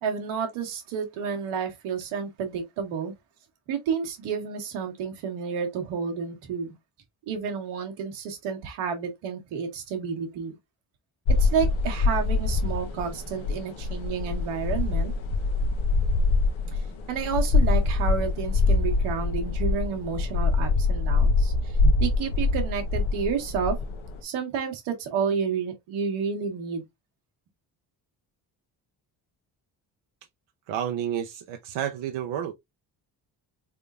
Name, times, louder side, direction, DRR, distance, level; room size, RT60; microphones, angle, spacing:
voice 1, 0.0-3.1 3.7-6.7 7.3-10.5 11.4-15.1 16.7-16.8 17.1-23.8 24.2-26.8, right 6 dB, 85° right, 1.3 m, -30 dB
sound 1, 11.3-24.2, left 3 dB, 75° left, 1.0 m, -24 dB
voice 2, 30.7-32.5, right 10 dB, 70° right, 0.7 m, -30 dB
3.7 x 3.5 x 2.4 m
supercardioid pair, 50°, 48 cm